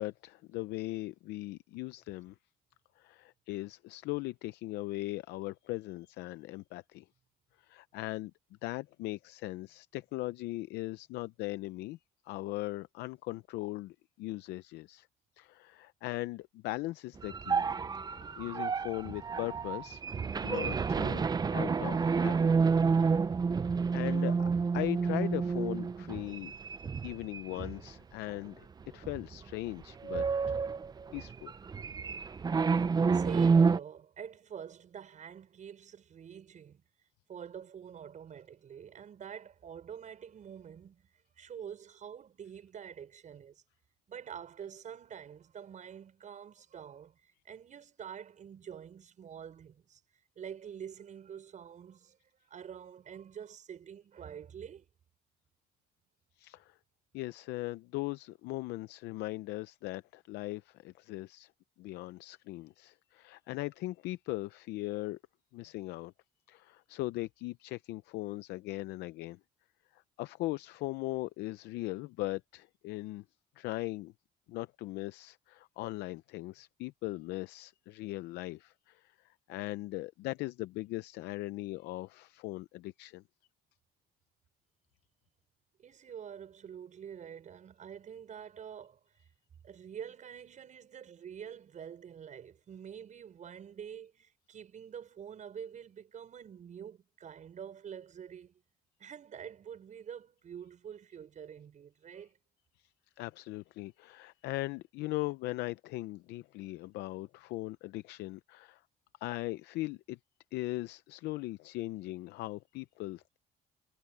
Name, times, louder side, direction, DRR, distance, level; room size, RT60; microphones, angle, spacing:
voice 1, 0.0-2.3 3.0-7.1 7.6-8.3 8.6-12.0 12.3-15.1 15.4-17.7 18.3-22.5 22.9-23.1 23.9-24.5 24.7-26.6 27.0-30.2 31.1-31.5 56.4-56.8 57.1-61.5 61.8-65.2 65.5-66.1 66.5-69.4 69.9-73.2 73.6-74.1 74.5-83.2 103.2-108.8 109.2-110.2 110.5-113.4, left 18 dB, 85° left, 0.6 m, -39 dB
sound 1, 17.2-27.9 28.3-28.5 29.0-29.4 29.7-33.8, right 5 dB, 25° right, 0.6 m, -29 dB
voice 2, 33.1-36.8 37.3-41.0 41.4-43.6 44.1-50.0 50.4-52.2 52.5-54.8 85.8-89.0 89.6-98.6 99.0-102.4, right 8 dB, 45° right, 6.2 m, -47 dB
cardioid pair, 110°, 17 cm